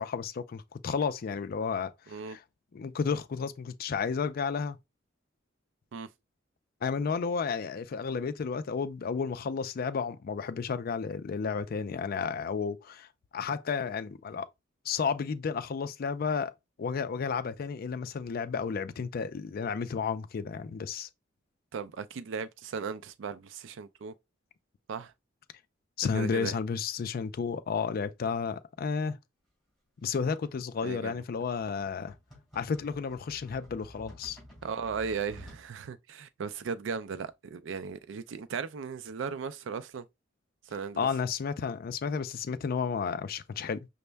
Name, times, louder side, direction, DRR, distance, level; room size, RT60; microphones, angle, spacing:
voice 1, 0.0-2.4 2.7-4.8 6.8-13.1 13.3-14.5 14.9-16.5 16.8-21.1 26.0-29.2 30.0-32.2 32.5-34.4 41.0-43.9, left 5 dB, 50° left, 0.4 m, -32 dB
voice 2, 2.1-2.4 5.9-6.1 21.7-24.1 24.9-25.1 26.1-26.6 30.8-31.2 34.6-40.1 40.7-41.0, right 5 dB, 70° right, 0.4 m, -36 dB
sound 1, 30.0-35.6, equal, ahead, 2.6 m, -52 dB
5.2 x 2.1 x 3.3 m
head